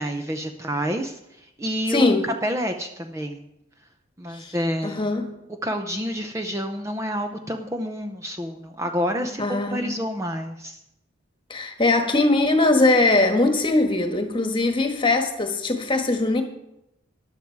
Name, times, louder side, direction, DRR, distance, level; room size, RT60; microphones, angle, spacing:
voice 1, 0.0-3.5 4.2-5.1 5.6-10.8, equal, 15° right, 0.6 m, -28 dB
voice 2, 1.9-2.3 4.3-4.5 4.8-5.3 9.2-9.9 11.5-16.4, left 2 dB, 25° left, 1.4 m, -21 dB
14.5 x 10.5 x 4.6 m
head